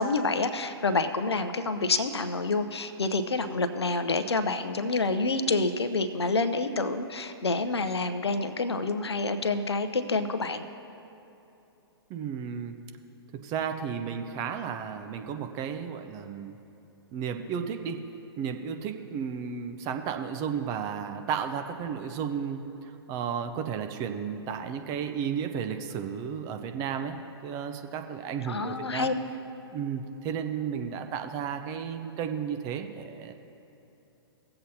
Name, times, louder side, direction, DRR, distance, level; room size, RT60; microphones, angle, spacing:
voice 1, 0.0-10.6 28.5-29.1, left 3 dB, 80° left, 10 dB, 0.7 m, -28 dB
voice 2, 12.1-12.8 13.3-16.6 17.1-18.0 18.4-22.6 23.1-27.2 27.4-29.1 29.7-33.3, right 7 dB, 25° right, 6 dB, 0.6 m, -33 dB
17.5 x 7.8 x 2.8 m, 3.0 s
figure-of-eight pair, 120°, 14 cm